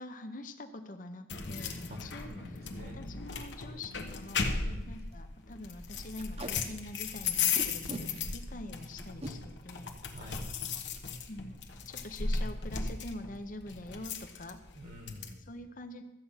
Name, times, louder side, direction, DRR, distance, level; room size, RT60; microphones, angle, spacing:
voice 1, 0.0-4.5 4.9-9.9 10.7-10.8 11.3-11.6 11.9-14.6 15.5-16.0, left 2 dB, 45° left, 7 dB, 0.7 m, -45 dB
sound 1, 1.3-15.3, left 5 dB, 65° left, 1.2 m, -36 dB
voice 2, 2.3-3.0 4.6-4.9 10.1-10.5 14.8-15.4, left 1 dB, 50° right, 3 dB, 1.4 m, -47 dB
Packing tape duct tape, 2.5-2.7 3.2-3.3 3.5-3.6 4.1-4.2 4.5-4.6 5.0-5.1 6.2-6.5 7.6-8.1 9.0-9.3 10.9-11.1 11.4-11.6 11.8-12.3, right 1 dB, 35° right, 1.0 m, -42 dB
13.5 x 8.4 x 5.6 m, 1.0 s
head